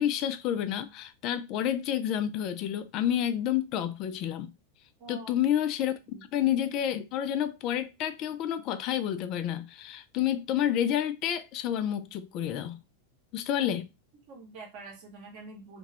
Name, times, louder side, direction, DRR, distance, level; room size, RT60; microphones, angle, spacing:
voice 1, 0.0-4.5 5.1-12.8 13.3-13.9, left 10 dB, 40° left, 0.3 m, -29 dB
voice 2, 5.0-5.4 6.1-6.3 14.3-15.8, right 3 dB, 45° right, 0.9 m, -46 dB
2.8 x 2.1 x 2.8 m
figure-of-eight pair, 90°, 0 cm